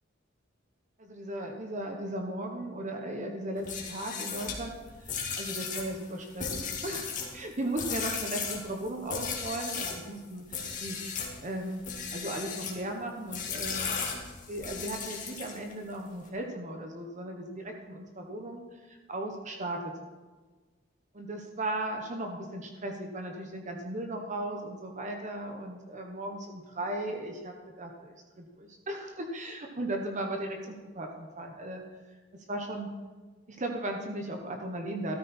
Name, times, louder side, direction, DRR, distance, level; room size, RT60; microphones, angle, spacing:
voice 1, 1.0-4.8 5.1-11.8 12.1-14.2 14.5-19.9 21.1-31.8 32.3-32.9 33.5-35.2, right 1 dB, 40° right, 3 dB, 1.3 m, -37 dB
sound 1, 3.6-10.0 10.5-11.3 11.8-12.8 13.3-15.7, left 6 dB, 40° left, 2.2 m, -36 dB
13.5 x 13.0 x 4.4 m, 1.3 s
head